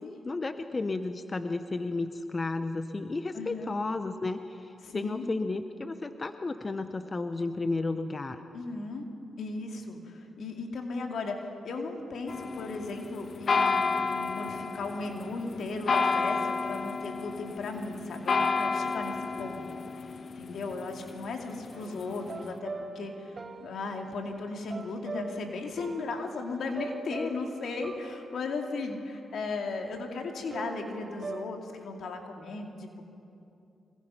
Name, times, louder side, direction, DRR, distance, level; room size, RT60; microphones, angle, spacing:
voice 1, 0.0-8.4, left 3 dB, 35° left, 9 dB, 1.0 m, -33 dB
voice 2, 3.3-3.7 4.8-5.3 8.5-9.0 9.4-33.0, left 3 dB, 70° left, 3 dB, 2.5 m, -36 dB
sound 1, 12.3-22.4, left 4 dB, 55° left, 1.1 m, -31 dB
sound 2, 21.7-29.7 30.5-31.4, right 3 dB, 45° right, 1.0 m, -43 dB
25.5 x 21.5 x 5.7 m, 2.7 s
cardioid pair, 60°, 0 cm